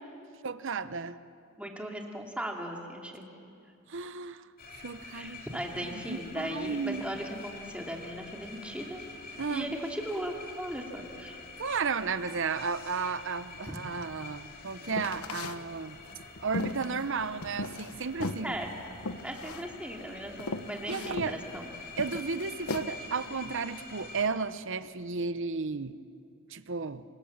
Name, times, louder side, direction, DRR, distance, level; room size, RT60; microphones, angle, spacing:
voice 1, 0.4-1.2 3.9-4.5 4.7-5.5 5.8-7.0 9.4-9.7 11.6-16.0 16.4-18.5 20.9-21.4 22.0-25.9 26.5-27.0, right 5 dB, 60° right, 13 dB, 0.9 m, -33 dB
voice 2, 1.6-3.3 5.1-9.0 9.5-11.4 13.7-13.8 18.4-18.7 19.2-21.7, equal, 5° right, 1 dB, 2.7 m, -37 dB
sound 1, 4.6-24.3, left 3 dB, 45° left, 3.0 m, -47 dB
sound 2, 14.9-15.6 16.1-17.9 18.2-18.5 19.0-19.7 20.0-20.1 20.4-21.3 22.0-22.9, left 2 dB, 90° left, 1.2 m, -36 dB
28.0 x 26.0 x 7.3 m, 2.5 s
head